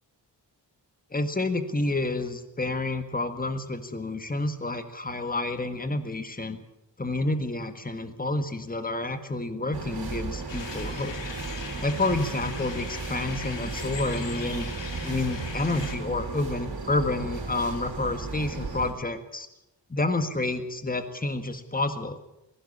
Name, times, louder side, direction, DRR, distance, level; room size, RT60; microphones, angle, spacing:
voice 1, 1.1-6.6 7.0-11.1 11.8-14.7 15.0-19.5 19.9-22.2, left 2 dB, 20° left, 9 dB, 1.7 m, -29 dB
sound 1, 9.7-18.9, right 3 dB, 55° right, 4.5 m, -35 dB
sound 2, 10.5-16.0, left 5 dB, 80° left, 2.9 m, -40 dB
19.0 x 16.5 x 8.6 m, 0.89 s
wide cardioid pair, 95°, 43 cm